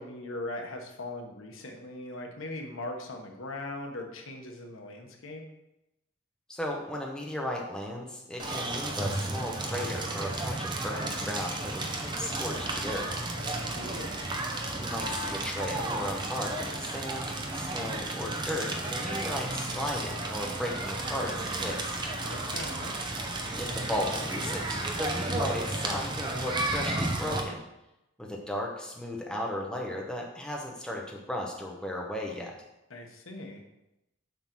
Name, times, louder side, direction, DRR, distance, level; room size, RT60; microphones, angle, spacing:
voice 1, 0.0-5.4 13.4-14.3 22.2-23.0 32.9-33.6, left 2 dB, 90° left, 3 dB, 1.1 m, -40 dB
voice 2, 6.5-13.1 14.7-22.0 23.6-27.6 28.2-32.6, left 1 dB, 5° left, -2 dB, 0.9 m, -35 dB
Crackle, 8.4-27.4, right 2 dB, 20° right, 0.7 m, -33 dB
7.3 x 3.9 x 6.0 m, 0.90 s
head